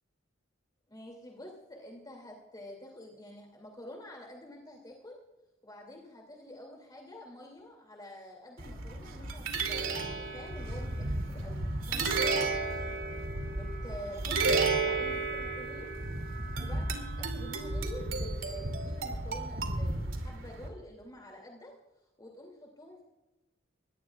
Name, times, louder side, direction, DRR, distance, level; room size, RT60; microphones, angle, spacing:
voice 1, 0.9-5.2 5.6-12.7 13.5-15.9 16.6-21.7 22.2-23.0, left 1 dB, 20° left, 0 dB, 2.6 m, -48 dB
sound 1, 8.6-20.7, right 3 dB, 80° right, 2.7 m, -33 dB
22.5 x 18.5 x 2.4 m, 1.0 s
head